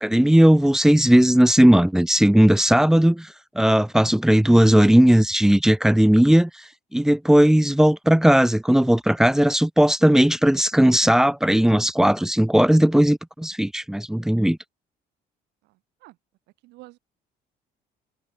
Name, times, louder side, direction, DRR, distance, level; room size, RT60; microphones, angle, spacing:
voice 1, 0.0-3.3 3.6-6.5 6.9-14.6, right 1 dB, 5° right, 0.4 m, -17 dB
voice 2, 15.6-16.2 16.6-17.0, right 20 dB, 90° right, 6.0 m, -49 dB
cardioid pair, 110°, 17 cm